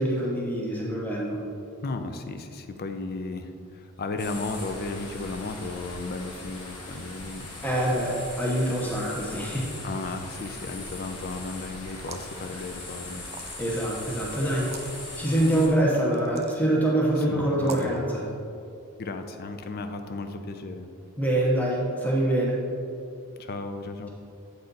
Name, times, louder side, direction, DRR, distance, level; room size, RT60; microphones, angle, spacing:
voice 1, 0.0-1.4 7.6-9.7 13.6-14.8 15.2-18.2 21.2-22.6, right 1 dB, 5° left, -4 dB, 0.8 m, -25 dB
voice 2, 1.8-7.5 9.8-13.2 17.3-18.0 19.0-20.9 23.4-24.1, left 3 dB, 45° left, 7 dB, 0.5 m, -35 dB
sound 1, 4.2-15.7, left 2 dB, 90° left, 1.1 m, -40 dB
sound 2, 12.0-12.4 13.2-13.8 14.6-14.9 16.1-16.6 17.6-18.0, right 5 dB, 30° right, 0.4 m, -40 dB
8.1 x 4.1 x 3.9 m, 2.5 s
head